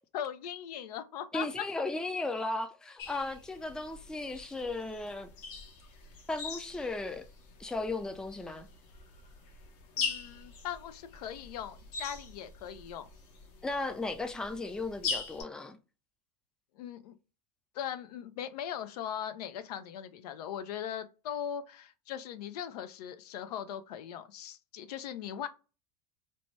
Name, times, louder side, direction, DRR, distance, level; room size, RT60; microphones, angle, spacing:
voice 1, 0.1-1.5 10.0-13.1 16.8-17.1 17.7-25.5, left 9 dB, 80° left, 0.5 m, -39 dB
voice 2, 1.3-5.3 6.3-7.2 7.6-8.7 13.6-15.8, left 2 dB, 5° left, 0.4 m, -36 dB
sound 1, 3.0-15.4, left 5 dB, 60° left, 0.9 m, -42 dB
2.7 x 2.1 x 3.1 m
hypercardioid pair, 95°, 20 cm